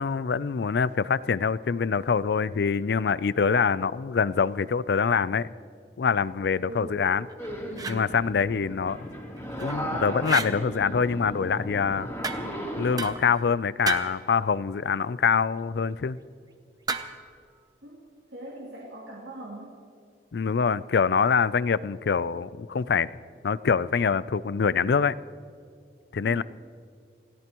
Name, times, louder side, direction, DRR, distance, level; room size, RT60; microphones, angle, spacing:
voice 1, 0.0-5.5 6.0-7.3 7.9-9.1 9.6-12.1 12.8-16.2 20.3-23.1 23.4-25.2 26.1-26.4, left 6 dB, 65° left, 18 dB, 0.4 m, -25 dB
voice 2, 6.6-7.1 17.8-18.0 18.3-19.8 26.2-26.4, right 1 dB, 75° right, -3 dB, 2.5 m, -41 dB
sound 1, 7.3-8.0 9.4-9.8 10.2-10.5 12.2-12.6 13.0-13.4 13.8-14.2 16.9-17.3, right 4 dB, 20° right, 0.7 m, -32 dB
sound 2, 7.4-13.2, equal, 10° left, 3.1 m, -35 dB
28.5 x 17.0 x 3.0 m, 2.3 s
head